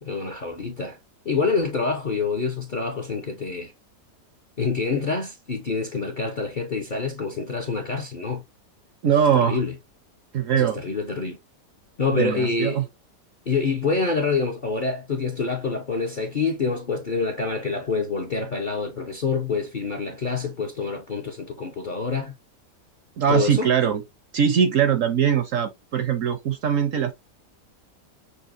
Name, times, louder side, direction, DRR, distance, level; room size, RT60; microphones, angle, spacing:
voice 1, 0.0-1.0 1.2-3.7 4.6-8.4 9.1-9.7 10.5-11.4 12.0-12.8 13.5-22.3 23.3-23.7, left 4 dB, 45° left, 0.6 m, -26 dB
voice 2, 9.0-9.6 10.3-10.8 12.1-12.9 23.2-24.0 24.3-27.1, right 8 dB, 60° right, 0.9 m, -21 dB
6.4 x 2.7 x 2.6 m
omnidirectional pair, 1.8 m